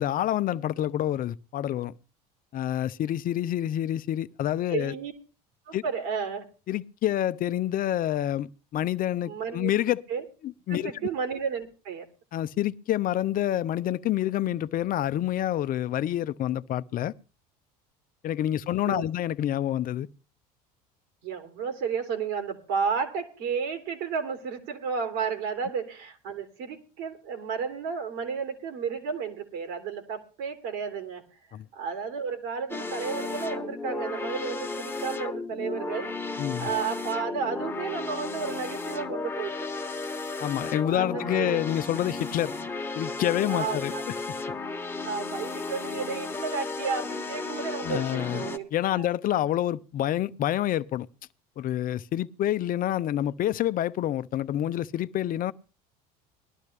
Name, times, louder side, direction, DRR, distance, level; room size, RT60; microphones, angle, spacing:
voice 1, 0.0-1.9 2.5-4.9 5.7-5.8 6.7-10.0 10.4-10.9 12.3-17.1 18.2-20.1 31.5-31.7 36.4-36.7 40.4-42.5 42.9-43.9 47.8-48.5 48.7-51.1 51.6-55.5, left 12 dB, 45° left, 0.7 m, -27 dB
voice 2, 4.7-5.1 5.7-6.5 9.3-9.7 10.1-10.2 10.7-12.1 18.8-19.0 21.2-31.2 31.7-39.8 40.9-41.6 43.5-44.0 45.0-49.0, right 6 dB, 70° right, 3.2 m, -32 dB
sound 1, 32.7-48.6, left 3 dB, 10° left, 1.5 m, -34 dB
19.5 x 12.0 x 3.4 m
hypercardioid pair, 85°, 20 cm